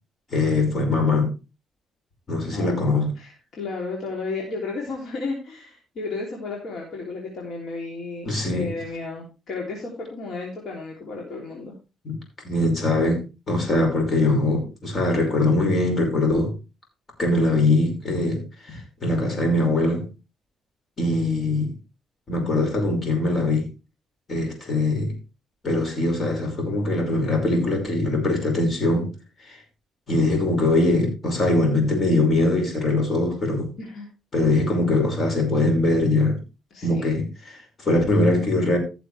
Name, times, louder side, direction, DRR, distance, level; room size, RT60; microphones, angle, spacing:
voice 1, 0.3-1.3 2.3-3.1 8.3-8.8 12.0-12.2 12.4-16.5 17.2-18.4 18.7-20.1 21.0-21.7 22.3-23.7 24.3-25.1 25.6-29.1 29.5-29.6 30.1-33.7 34.3-36.4 36.8-38.8, left 2 dB, 40° left, 5.5 m, -22 dB
voice 2, 2.4-3.3 3.6-11.7 33.8-34.1 36.7-37.1, left 3 dB, 60° left, 3.1 m, -33 dB
15.5 x 6.8 x 3.3 m
cardioid pair, 100°, 0 cm